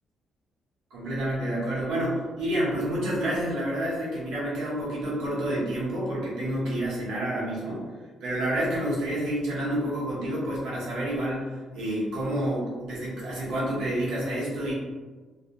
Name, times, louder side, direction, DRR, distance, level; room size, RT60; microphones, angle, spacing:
voice 1, 0.9-7.9 8.2-14.7, right 1 dB, 85° right, -7 dB, 0.9 m, -29 dB
2.3 x 2.1 x 2.8 m, 1.4 s
cardioid pair, 180°, 0 cm